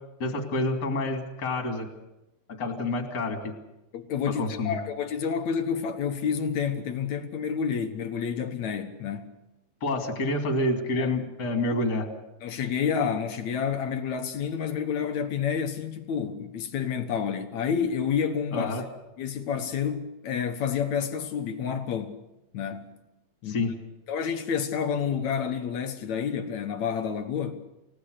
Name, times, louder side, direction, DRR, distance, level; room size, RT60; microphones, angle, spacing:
voice 1, 0.2-1.9 2.6-3.5 4.4-4.8 9.8-12.1 18.5-18.8 23.5-23.7, left 2 dB, 25° left, 2.8 m, -28 dB
voice 2, 3.9-9.4 11.0-11.1 12.4-18.7 19.2-22.2 22.5-23.0 23.4-23.6 24.1-27.6, left 7 dB, 65° left, 1.9 m, -29 dB
29.5 x 17.0 x 6.6 m
omnidirectional pair, 5.0 m